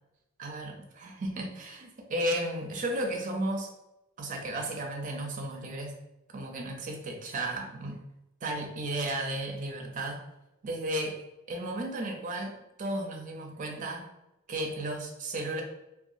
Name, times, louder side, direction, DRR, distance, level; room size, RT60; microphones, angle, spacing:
voice 1, 0.4-3.7 4.2-6.0 6.3-8.0 8.4-10.2 10.6-11.2 11.5-14.1 14.5-15.6, right 1 dB, 40° right, 2 dB, 0.4 m, -34 dB
2.7 x 2.3 x 2.4 m, 0.92 s
head